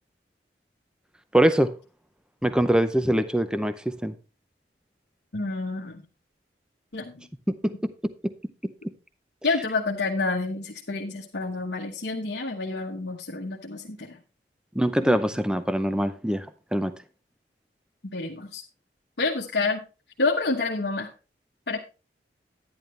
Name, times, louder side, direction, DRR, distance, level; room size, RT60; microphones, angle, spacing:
voice 1, 1.3-1.7 2.4-3.7 4.0-4.1 7.6-7.7 8.2-8.3 14.8-16.5 16.7-16.9, right 1 dB, 5° right, 0.6 m, -23 dB
voice 2, 5.3-6.0 6.9-7.2 9.4-14.2 15.0-15.2 18.1-18.6 19.2-19.8 20.2-21.1 21.7-21.8, left 3 dB, 70° left, 1.2 m, -28 dB
10.5 x 10.5 x 3.2 m
head